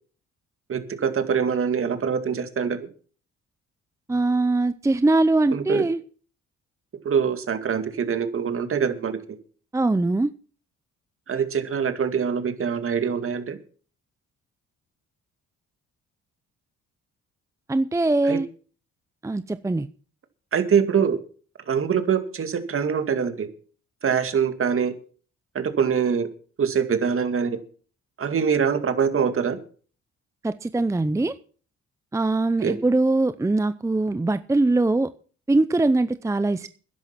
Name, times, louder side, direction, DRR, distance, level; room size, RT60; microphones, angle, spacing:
voice 1, 0.7-2.9 5.5-5.8 7.0-9.2 11.3-13.6 18.2-18.4 20.5-21.2 21.7-23.5 24.0-24.9 25.5-26.3 26.6-27.6 28.2-29.6 32.6-32.8, right 7 dB, 45° right, 2.3 m, -24 dB
voice 2, 4.1-6.0 9.7-10.3 17.7-18.5 19.2-19.9 30.4-31.3 32.1-35.1 35.5-36.7, right 2 dB, 10° right, 0.6 m, -22 dB
12.5 x 10.5 x 5.9 m
cardioid pair, 105°, 29 cm